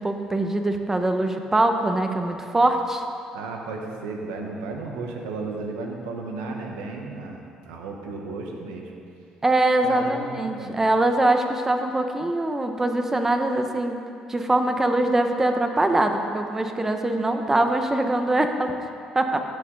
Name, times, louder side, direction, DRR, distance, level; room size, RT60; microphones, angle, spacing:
voice 1, 0.0-3.0 9.4-14.0 14.3-18.7 19.1-19.4, right 2 dB, 20° right, 6 dB, 1.1 m, -23 dB
voice 2, 3.3-8.9 9.8-10.8, right 3 dB, 85° right, 1 dB, 1.2 m, -34 dB
15.0 x 6.7 x 4.0 m, 2.4 s
hypercardioid pair, 60°, 2 cm